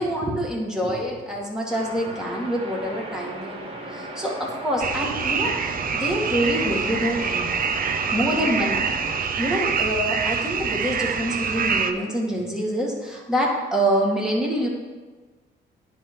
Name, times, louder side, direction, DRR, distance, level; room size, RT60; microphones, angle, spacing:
voice 1, 0.0-7.5 8.1-14.7, equal, 5° right, -3 dB, 1.9 m, -26 dB
sound 1, 1.7-9.2, right 1 dB, 25° right, 1.4 m, -37 dB
sound 2, 4.8-11.9, right 6 dB, 45° right, 0.6 m, -25 dB
10.0 x 3.7 x 4.6 m, 1.4 s
cardioid pair, 90°, 20 cm